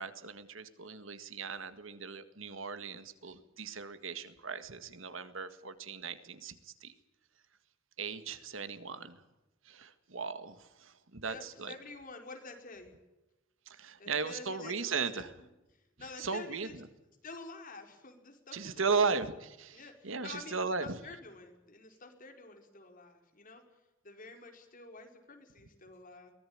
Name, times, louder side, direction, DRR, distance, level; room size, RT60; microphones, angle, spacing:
voice 1, 0.0-6.9 8.0-9.2 9.6-11.7 13.7-15.3 16.2-16.8 18.5-20.9, right 5 dB, 75° right, 11 dB, 1.8 m, -37 dB
voice 2, 11.2-13.0 14.0-14.7 15.1-15.3 16.0-16.7 17.2-19.2 19.7-23.6 24.0-26.3, left 3 dB, 45° left, 4 dB, 4.7 m, -49 dB
23.0 x 18.0 x 8.7 m, 0.99 s
head